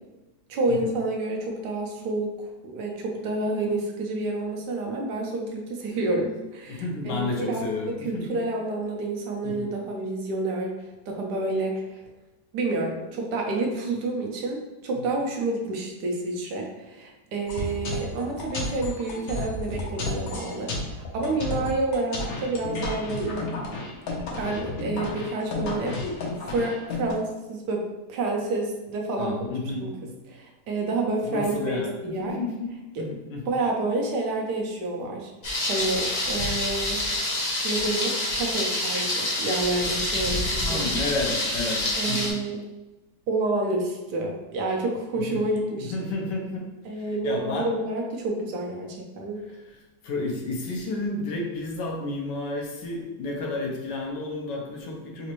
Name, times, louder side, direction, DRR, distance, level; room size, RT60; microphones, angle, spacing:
voice 1, 0.5-2.3 2.6-10.7 11.1-12.0 12.5-23.5 24.4-26.1 26.4-27.8 28.1-29.4 29.8-29.9 30.3-32.4 33.0-33.1 33.5-35.3 35.7-37.0 37.6-40.9 42.0-42.6 43.3-45.9 46.9-49.4, right 2 dB, 75° right, 1 dB, 1.2 m, -29 dB
voice 2, 6.7-8.3 9.4-9.7 15.0-15.1 29.2-30.1 31.2-33.5 40.6-42.3 45.1-45.5 45.8-47.7 49.5-49.6 50.0-55.3, left 2 dB, 80° left, 0 dB, 1.4 m, -31 dB
sound 1, 17.5-27.1, left 2 dB, 65° left, 1.1 m, -32 dB
Thunder, 35.4-42.3, left 1 dB, 45° left, 1.0 m, -27 dB
4.2 x 2.5 x 2.9 m, 1.0 s
omnidirectional pair, 1.8 m